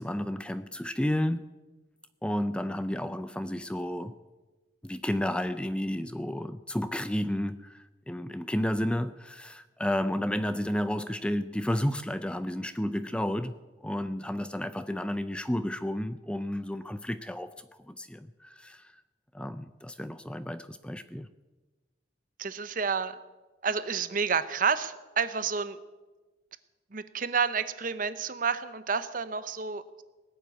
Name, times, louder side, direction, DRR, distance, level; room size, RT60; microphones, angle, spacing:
voice 1, 0.0-1.4 2.2-4.1 4.8-13.6 13.8-19.0 19.3-21.3, left 1 dB, 5° left, 12 dB, 0.4 m, -32 dB
voice 2, 22.4-23.2 23.6-25.8 26.9-30.0, right 5 dB, 45° right, 13 dB, 0.8 m, -30 dB
19.0 x 7.4 x 9.2 m, 1.2 s
head